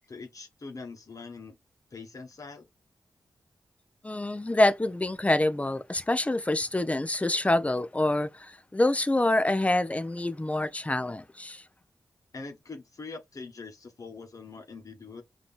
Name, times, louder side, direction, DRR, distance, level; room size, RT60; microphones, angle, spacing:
voice 1, 0.1-1.6 1.9-2.7 12.3-15.2, left 4 dB, 50° left, 1.4 m, -43 dB
voice 2, 4.0-11.6, left 1 dB, 20° left, 0.9 m, -26 dB
5.0 x 3.0 x 3.3 m
cardioid pair, 60°, 7 cm